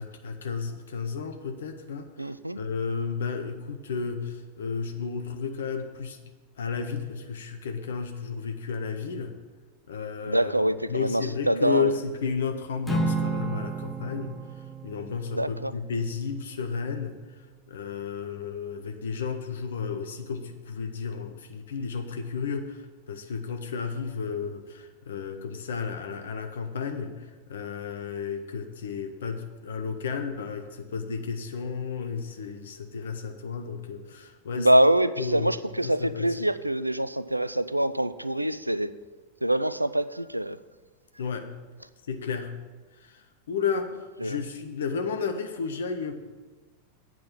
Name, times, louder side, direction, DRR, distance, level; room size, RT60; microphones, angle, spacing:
voice 1, 0.0-2.3 2.6-6.2 6.6-9.3 9.9-10.5 10.9-14.3 14.8-17.2 17.7-34.7 35.2-35.5 35.8-36.3 41.2-41.5 42.1-42.6 43.0-46.3, left 5 dB, 65° left, 7 dB, 0.7 m, -32 dB
voice 2, 2.2-2.6 10.2-11.9 15.4-15.7 34.5-38.9 39.4-40.6 44.2-44.4, right 1 dB, 85° right, 15 dB, 0.3 m, -25 dB
Acoustic guitar / Strum, 12.9-17.3, right 3 dB, 5° left, 1.0 m, -33 dB
8.6 x 6.0 x 7.2 m, 1.3 s
figure-of-eight pair, 90°, 0 cm